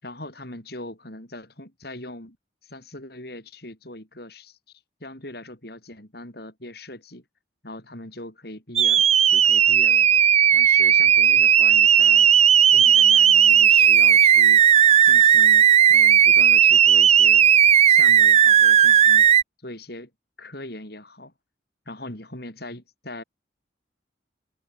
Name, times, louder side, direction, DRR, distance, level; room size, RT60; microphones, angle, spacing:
voice 1, 0.0-2.4 2.6-7.2 7.6-10.1 10.5-12.3 12.7-14.6 15.0-17.5 17.9-19.3 19.6-20.1 20.4-21.3 21.9-23.2, left 1 dB, 55° left, 6.0 m, -40 dB
sound 1, 8.8-19.4, right 9 dB, 35° right, 0.4 m, -15 dB
head